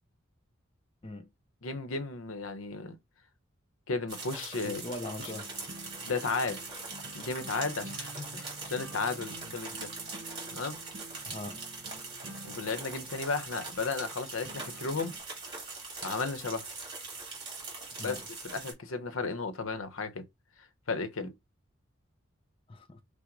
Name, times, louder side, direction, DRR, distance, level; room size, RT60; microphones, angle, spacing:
voice 1, 1.6-3.0 3.9-4.8 5.2-5.3 6.1-6.6 7.1-9.9 10.5-10.8 12.4-15.1 16.0-16.7 18.0-20.2 20.9-21.3, left 4 dB, 80° left, 0.7 m, -34 dB
sound 1, 4.1-18.7, right 3 dB, 25° right, 2.0 m, -42 dB
voice 2, 4.6-5.5 11.3-11.6 18.0-18.2 22.7-23.0, left 1 dB, 25° left, 0.5 m, -40 dB
sound 2, 5.2-15.2, right 2 dB, 55° right, 0.7 m, -49 dB
5.9 x 2.1 x 3.8 m
head